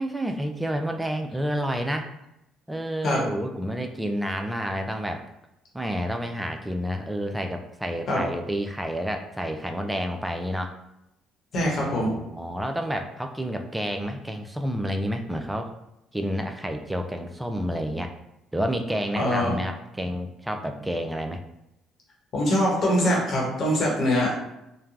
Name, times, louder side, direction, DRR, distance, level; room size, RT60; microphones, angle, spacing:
voice 1, 0.0-2.1 2.7-5.2 5.7-10.7 11.8-15.7 16.1-18.1 18.5-21.4, equal, 10° right, 5 dB, 0.4 m, -29 dB
voice 2, 11.5-12.1 19.1-19.5 22.3-24.3, equal, 50° left, -3 dB, 1.1 m, -23 dB
3.1 x 2.1 x 2.4 m, 0.87 s
hypercardioid pair, 55°, 0 cm